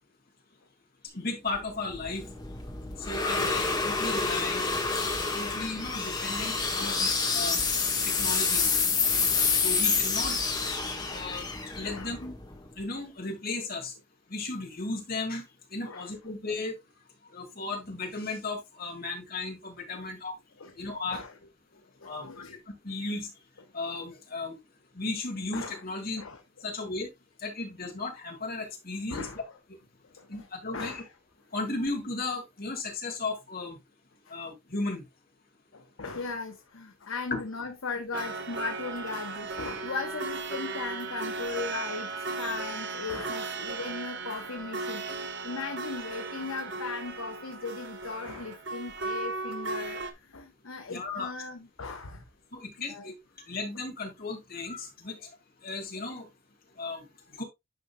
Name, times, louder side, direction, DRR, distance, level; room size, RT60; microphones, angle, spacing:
voice 1, 1.1-2.3 3.0-4.6 5.3-7.7 8.0-8.7 9.6-10.5 11.1-11.5 11.7-12.3 12.8-13.9 14.3-15.4 15.7-16.8 17.3-20.3 20.8-21.2 22.0-23.3 23.7-24.6 24.9-26.2 26.6-27.1 27.4-29.3 30.3-31.0 31.5-33.8 34.3-35.0 37.3-37.4 50.9-51.3 52.5-53.1 53.5-55.3 55.6-56.3 56.8-57.4, left 3 dB, 45° left, 2.3 m, -35 dB
sound 1, 1.5-12.8, left 4 dB, 20° left, 1.5 m, -28 dB
voice 2, 6.8-7.1 8.2-8.3 9.3-9.4 10.9-11.1 11.9-12.1 15.8-16.1 19.9-20.1 20.6-21.3 21.7-22.6 25.5-25.8 26.2-26.4 29.1-29.4 30.2-30.5 30.7-31.1 34.2-34.3 35.7-42.1 42.4-52.2 52.9-53.1, left 4 dB, 85° left, 0.9 m, -38 dB
sound 2, 38.1-50.1, right 3 dB, 60° right, 1.1 m, -36 dB
10.5 x 5.4 x 2.3 m
head